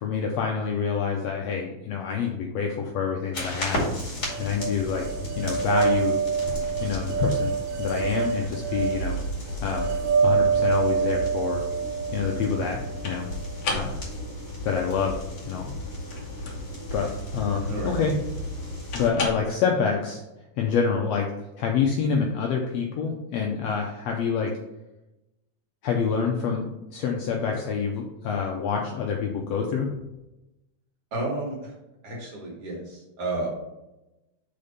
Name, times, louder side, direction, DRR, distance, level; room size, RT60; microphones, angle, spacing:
voice 1, 0.0-3.8 4.4-5.1 5.4-6.2 6.8-7.5 7.8-9.2 9.6-9.9 10.2-11.6 12.1-13.3 13.7-14.0 14.6-15.2 15.4-15.7 16.9-18.1 18.9-20.2 20.6-21.3 21.6-24.5 25.8-29.9, left 6 dB, 75° left, 1 dB, 1.5 m, -27 dB
sound 1, 3.2-19.5, left 2 dB, 60° left, 1.6 m, -39 dB
sound 2, 3.3-19.1, left 1 dB, 30° left, 2.4 m, -35 dB
sound 3, 4.3-13.4, right 6 dB, 80° right, 1.5 m, -26 dB
voice 2, 31.1-31.7 32.0-33.5, right 2 dB, 55° right, -2 dB, 2.3 m, -31 dB
5.1 x 4.3 x 5.6 m, 0.96 s
omnidirectional pair, 3.6 m